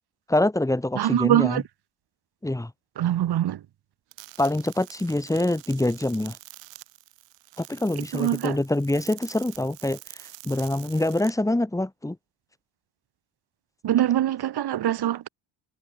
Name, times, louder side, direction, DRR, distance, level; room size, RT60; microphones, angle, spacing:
voice 1, 0.3-1.6 2.4-2.7 4.4-6.4 7.6-12.2, left 1 dB, 5° left, 1.7 m, -25 dB
voice 2, 1.0-1.6 3.0-3.6 8.1-8.6 13.8-15.3, right 12 dB, 60° right, 2.2 m, -23 dB
sound 1, 4.1-11.3, right 19 dB, 85° right, 3.5 m, -46 dB
supercardioid pair, 75°, 43 cm